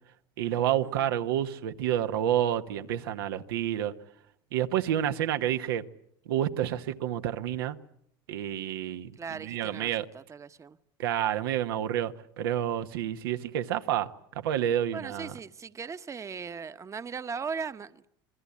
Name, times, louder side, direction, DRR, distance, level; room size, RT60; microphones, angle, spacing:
voice 1, 0.4-3.9 4.5-5.8 6.3-7.8 8.3-9.1 9.4-10.1 11.0-14.1 14.4-15.3, right 11 dB, 85° right, 1.1 m, -29 dB
voice 2, 9.2-10.8 14.9-18.1, right 5 dB, 25° right, 1.0 m, -38 dB
27.0 x 21.5 x 8.4 m
supercardioid pair, 90°, 12 cm